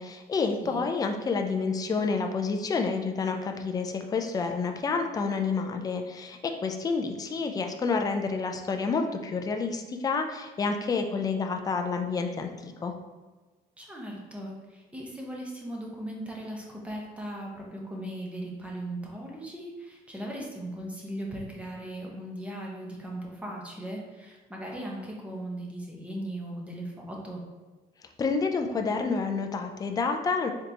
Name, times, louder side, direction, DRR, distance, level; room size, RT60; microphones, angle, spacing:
voice 1, 0.0-12.9 28.2-30.5, left 4 dB, 20° left, 5 dB, 0.4 m, -29 dB
voice 2, 13.8-27.4, right 1 dB, 5° right, -2 dB, 0.8 m, -38 dB
3.8 x 3.4 x 2.8 m, 1.3 s
cardioid pair, 110°, 17 cm